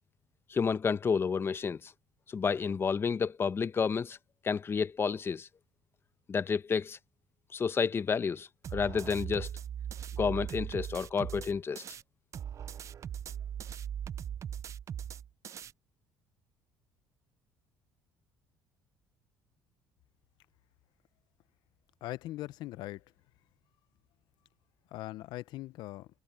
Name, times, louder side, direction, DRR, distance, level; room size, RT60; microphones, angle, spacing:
voice 1, 0.5-1.9 2.3-4.2 4.4-5.5 6.3-7.0 7.5-9.5 10.2-11.8, left 6 dB, 30° left, 0.8 m, -30 dB
sound 1, 8.6-12.0 12.3-15.7, right 9 dB, 40° right, 0.5 m, -39 dB
voice 2, 22.0-23.0 24.9-26.1, left 16 dB, 70° left, 0.6 m, -40 dB
supercardioid pair, 90°, 8 cm